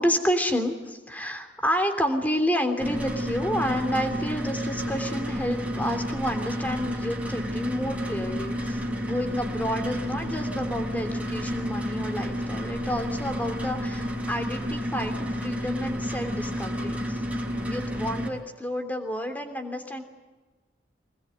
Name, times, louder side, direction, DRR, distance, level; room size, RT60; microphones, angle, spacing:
voice 1, 0.0-17.2 17.7-20.0, equal, 10° left, 6 dB, 3.2 m, -30 dB
sound 1, 2.8-18.3, equal, 5° right, 5.0 m, -30 dB
25.5 x 21.0 x 9.2 m, 1.3 s
head